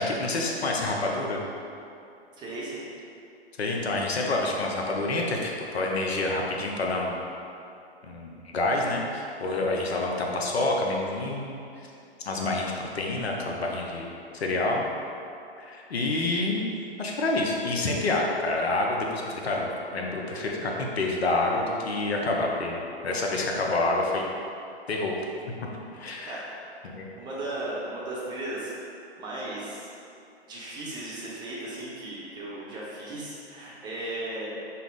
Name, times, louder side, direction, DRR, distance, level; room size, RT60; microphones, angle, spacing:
voice 1, 0.0-1.5 3.6-7.2 8.0-11.9 12.3-14.9 15.6-16.6 17.0-24.2 24.9-25.1 25.7-26.5 26.8-27.1, left 2 dB, 75° left, -1 dB, 0.7 m, -28 dB
voice 2, 2.4-2.9 26.2-26.4 27.2-29.9 30.5-34.6, right 1 dB, 15° right, -7 dB, 0.7 m, -36 dB
5.6 x 2.1 x 3.8 m, 2.7 s
figure-of-eight pair, 115°, 32 cm